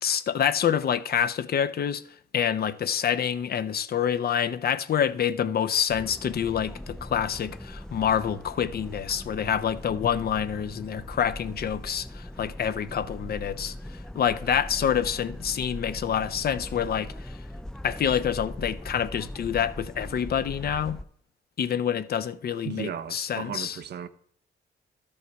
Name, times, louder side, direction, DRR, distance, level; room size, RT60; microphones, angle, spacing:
voice 1, 0.0-2.0 2.3-17.4 17.8-21.0 21.6-23.8, left 8 dB, 55° left, 0.6 m, -27 dB
sound 1, 5.9-21.0, left 1 dB, 5° left, 0.4 m, -40 dB
voice 2, 22.6-24.1, right 8 dB, 65° right, 0.7 m, -35 dB
12.5 x 5.5 x 4.7 m
cardioid pair, 75°, 19 cm